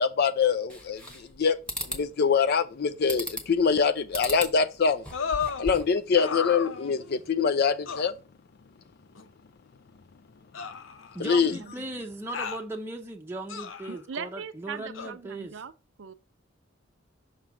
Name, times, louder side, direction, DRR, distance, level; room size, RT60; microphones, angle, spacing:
voice 1, 0.0-1.6 1.9-5.0 5.6-8.1 11.2-11.5, left 5 dB, 55° left, 0.5 m, -24 dB
sound 1, 0.7-1.4 1.7-2.0 3.1-3.6 4.1-4.5 4.9-6.0, equal, 5° left, 1.2 m, -36 dB
sound 2, 5.1-5.7 6.2-7.2 7.9-8.1 9.2-9.3 10.5-11.4 12.3-12.6 13.5-14.0 14.9-15.1, left 6 dB, 90° left, 0.7 m, -33 dB
voice 2, 11.1-15.6, right 1 dB, 10° right, 0.6 m, -38 dB
voice 3, 13.9-15.7 16.0-16.1, right 6 dB, 75° right, 0.6 m, -39 dB
5.9 x 3.3 x 5.7 m
head